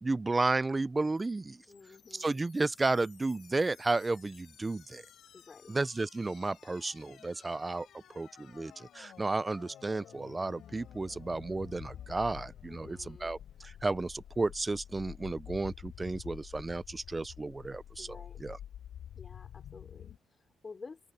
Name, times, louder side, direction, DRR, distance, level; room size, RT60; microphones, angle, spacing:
voice 1, 0.0-1.6 2.2-5.0 5.7-7.9 8.2-18.6, right 3 dB, 20° right, 0.4 m, -33 dB
sound 1, 1.2-20.2, left 10 dB, 70° left, 5.9 m, -50 dB
voice 2, 1.7-2.5 5.3-5.8 12.7-13.3 18.0-18.4 19.2-21.0, left 4 dB, 35° left, 3.8 m, -51 dB
open air
cardioid pair, 90°, 0 cm